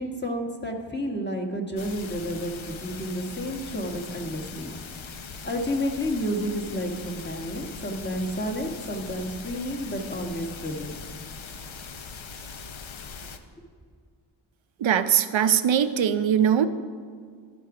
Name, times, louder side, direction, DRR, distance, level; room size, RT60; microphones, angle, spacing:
voice 1, 0.0-4.7 5.4-10.9, equal, 20° left, 0 dB, 1.6 m, -31 dB
sound 1, 1.8-13.4, left 5 dB, 80° left, 0.8 m, -41 dB
voice 2, 14.8-16.7, right 9 dB, 75° right, 10 dB, 0.6 m, -21 dB
14.5 x 6.1 x 4.9 m, 2.1 s
cardioid pair, 50°, 46 cm